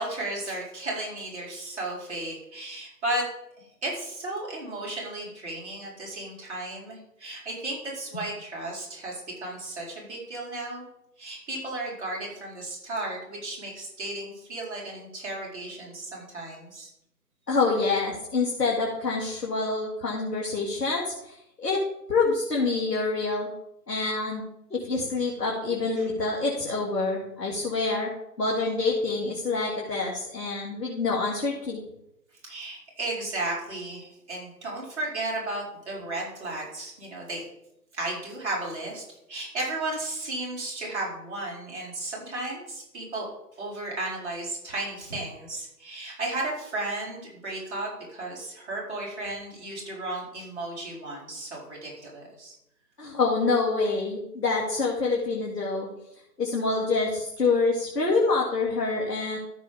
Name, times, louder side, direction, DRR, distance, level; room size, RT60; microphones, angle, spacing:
voice 1, 0.0-3.2 3.6-10.8 11.2-16.9 26.0-26.1 32.4-37.4 37.9-39.0 39.3-43.3 43.6-52.5, right 2 dB, 45° right, -4 dB, 4.5 m, -34 dB
voice 2, 17.5-21.8 22.1-23.5 23.9-28.1 28.4-31.8 53.0-55.9 56.4-59.4, left 3 dB, 70° left, -3 dB, 2.5 m, -26 dB
14.0 x 6.4 x 3.6 m, 0.81 s
figure-of-eight pair, 155°, 49 cm